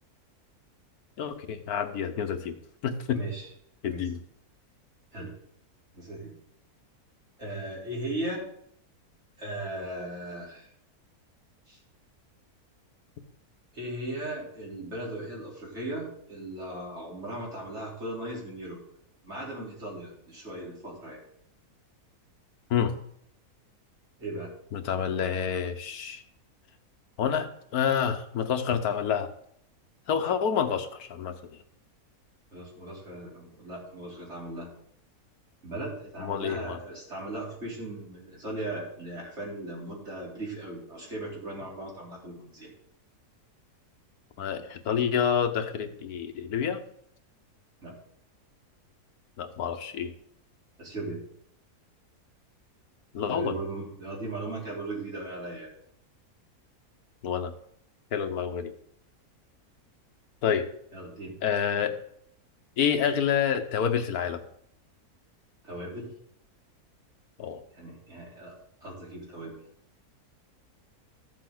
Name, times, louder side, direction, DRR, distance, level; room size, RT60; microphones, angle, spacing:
voice 1, 1.2-3.2 3.8-4.2 22.7-22.9 24.7-26.2 27.2-29.3 30.1-31.6 36.2-36.8 44.4-46.8 49.4-50.1 53.1-53.6 57.2-57.5 58.1-58.7 60.4-60.7 61.4-62.0 62.8-64.4 67.4-67.6, left 7 dB, 75° left, 7 dB, 1.5 m, -28 dB
voice 2, 3.1-3.5 3.9-4.0 5.1-5.3 5.9-6.3 7.4-8.5 9.4-10.7 11.7-11.8 13.7-18.8 19.2-21.2 24.2-24.5 32.5-34.7 35.6-42.7 47.8-47.9 50.8-51.2 53.3-55.7 60.9-61.3 65.6-66.1 67.7-68.5 68.8-69.6, right 1 dB, 45° right, -4 dB, 4.3 m, -37 dB
14.0 x 7.4 x 3.9 m, 0.71 s
omnidirectional pair, 1.6 m